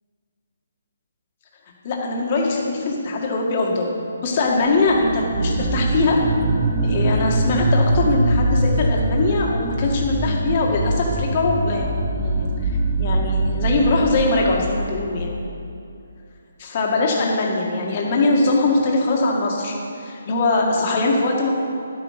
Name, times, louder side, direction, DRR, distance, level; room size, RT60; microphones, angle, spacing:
voice 1, 1.8-3.9 4.2-6.2 6.8-12.7 13.0-15.4 16.6-21.5, left 3 dB, 30° left, -1 dB, 1.8 m, -21 dB
sound 1, 4.7-15.3, right 2 dB, 15° right, 1.1 m, -22 dB
11.5 x 8.7 x 5.9 m, 2.6 s
hypercardioid pair, 175°, 0 cm